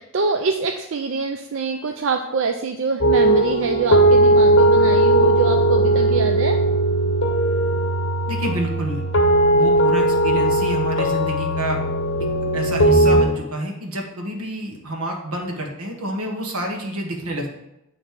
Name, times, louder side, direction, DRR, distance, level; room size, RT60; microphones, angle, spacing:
voice 1, 0.0-6.6, right 4 dB, 55° right, 5 dB, 0.4 m, -24 dB
sound 1, 3.0-13.2, right 1 dB, 60° left, 0.8 m, -18 dB
voice 2, 8.3-9.0 9.5-11.8 12.5-17.5, right 1 dB, 80° right, 2 dB, 1.4 m, -28 dB
9.3 x 3.3 x 5.1 m, 0.89 s
head